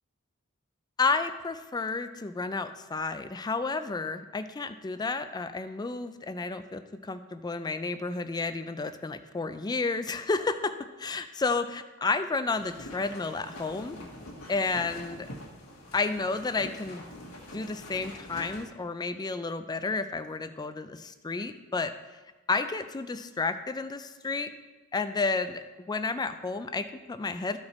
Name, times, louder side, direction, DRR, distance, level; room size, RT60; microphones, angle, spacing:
voice 1, 1.0-14.0 14.5-15.3 15.9-17.1 17.5-21.9 22.5-24.5 24.9-27.6, left 3 dB, 20° left, 10 dB, 0.4 m, -31 dB
sound 1, 12.5-18.7, left 1 dB, 85° left, 1.4 m, -45 dB
13.0 x 4.9 x 4.2 m, 1.2 s
head